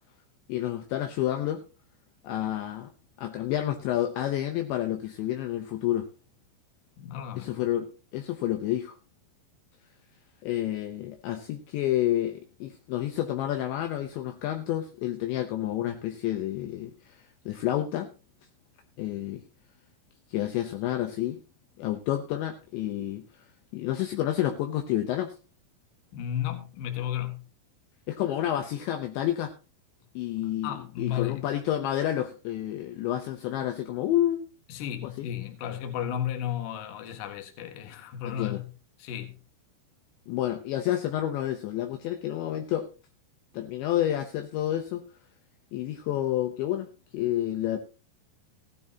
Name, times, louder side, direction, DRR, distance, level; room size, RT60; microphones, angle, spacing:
voice 1, 0.5-1.6 2.2-2.9 3.2-6.1 7.4-9.0 10.4-17.2 17.5-18.1 19.0-19.4 20.3-21.4 21.8-23.3 23.7-25.3 28.1-29.5 30.2-34.4 35.0-35.3 38.3-38.6 40.3-42.9 43.5-45.0 45.7-46.9 47.1-47.8, left 12 dB, 75° left, 2.9 m, -29 dB
voice 2, 7.0-7.6 26.1-27.4 30.6-31.4 34.7-38.7 39.0-39.4, left 10 dB, 60° left, 2.6 m, -33 dB
16.0 x 12.5 x 2.9 m
omnidirectional pair, 5.8 m